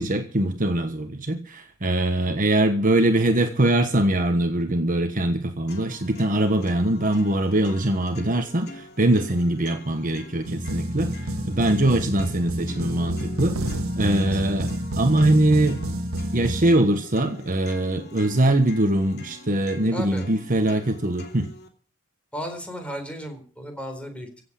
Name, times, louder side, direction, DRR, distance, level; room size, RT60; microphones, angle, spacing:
voice 1, 0.0-15.8 16.3-21.5, right 1 dB, 40° right, 1.3 m, -22 dB
sound 1, 5.7-21.7, left 1 dB, 50° left, 2.7 m, -44 dB
sound 2, 10.4-16.7, right 1 dB, 80° right, 1.6 m, -29 dB
voice 2, 14.1-14.4 19.9-20.2 22.3-24.4, equal, 5° left, 4.1 m, -35 dB
16.0 x 8.1 x 8.6 m
head